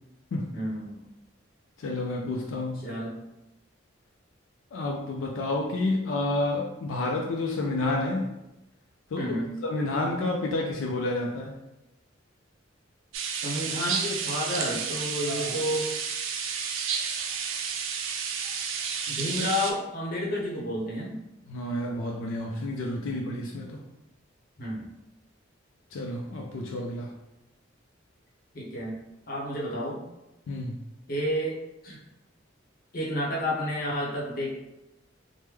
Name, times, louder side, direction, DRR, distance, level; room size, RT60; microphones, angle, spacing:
voice 1, 0.5-1.0 2.8-3.2 9.2-9.5 13.3-15.9 19.1-21.2 24.6-24.9 28.5-28.9 29.3-30.0 31.1-32.0 32.9-34.5, equal, 50° left, -4 dB, 0.9 m, -30 dB
voice 2, 1.8-2.9 4.7-8.3 9.1-9.3 9.6-11.6 15.3-15.6 21.5-23.8 25.9-27.1 30.5-30.8, left 2 dB, 90° left, 0 dB, 0.4 m, -30 dB
sound 1, 13.1-19.7, right 6 dB, 80° right, 0.4 m, -31 dB
3.2 x 2.1 x 3.3 m, 0.94 s
head